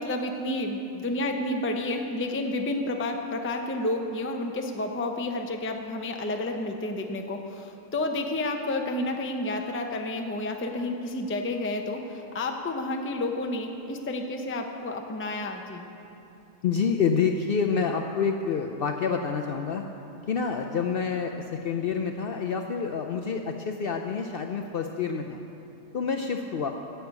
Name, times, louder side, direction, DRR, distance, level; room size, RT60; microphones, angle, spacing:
voice 1, 0.0-12.0 12.3-15.8, left 2 dB, 15° left, 3 dB, 0.4 m, -30 dB
voice 2, 16.6-19.8 20.3-25.4 25.9-26.7, left 6 dB, 60° left, 3 dB, 0.6 m, -28 dB
9.8 x 6.8 x 8.1 m, 2.8 s
omnidirectional pair, 1.4 m